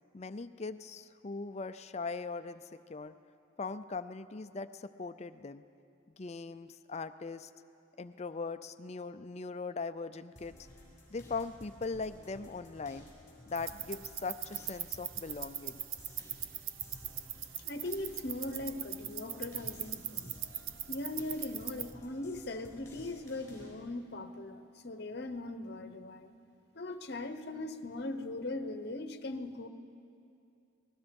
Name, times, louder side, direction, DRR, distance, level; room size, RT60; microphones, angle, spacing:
voice 1, 0.1-3.1 3.6-5.6 6.2-7.5 8.0-10.7 11.1-13.1 13.5-15.8, left 4 dB, 35° left, 11 dB, 0.4 m, -40 dB
sound 1, 10.4-23.7, left 1 dB, 15° left, 6.4 m, -54 dB
sound 2, 13.5-21.9, right 11 dB, 90° right, 0.7 m, -41 dB
voice 2, 17.6-20.4 20.9-26.3 26.7-29.7, left 2 dB, 55° left, 9 dB, 1.0 m, -40 dB
29.0 x 20.0 x 5.3 m, 2.7 s
head